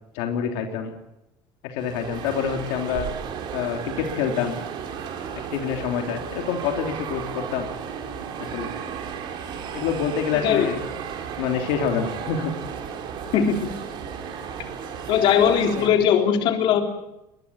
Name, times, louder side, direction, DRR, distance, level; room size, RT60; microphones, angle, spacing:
voice 1, 0.1-0.9 1.6-3.1 3.5-4.6 5.5-7.7 8.4-8.7 9.7-10.8 11.4-12.5 15.8-15.9, left 7 dB, 80° left, 3 dB, 3.2 m, -27 dB
sound 1, 1.8-15.9, right 7 dB, 50° right, 4.8 m, -34 dB
voice 2, 13.3-13.7 15.1-16.8, left 8 dB, 55° left, 4 dB, 3.8 m, -19 dB
22.5 x 21.0 x 8.7 m, 0.89 s
cardioid pair, 145°, 10 cm